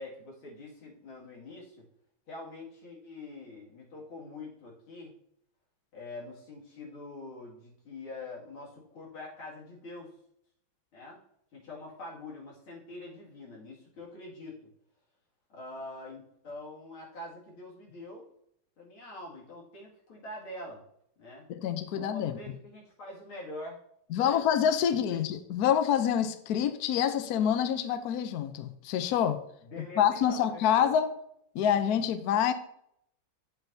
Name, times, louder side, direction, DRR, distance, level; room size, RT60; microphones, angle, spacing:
voice 1, 0.0-1.8 2.3-5.1 5.9-10.1 10.9-11.2 11.5-14.6 15.5-18.2 18.8-20.8 21.2-21.5 21.9-23.8 24.1-24.4 25.1-25.2 29.6-30.9, left 2 dB, 90° left, -4 dB, 3.2 m, -44 dB
voice 2, 21.5-22.3 24.1-29.4 29.8-31.1 31.5-32.5, left 9 dB, 65° left, 10 dB, 0.9 m, -27 dB
9.1 x 7.9 x 2.7 m, 0.71 s
omnidirectional pair, 2.2 m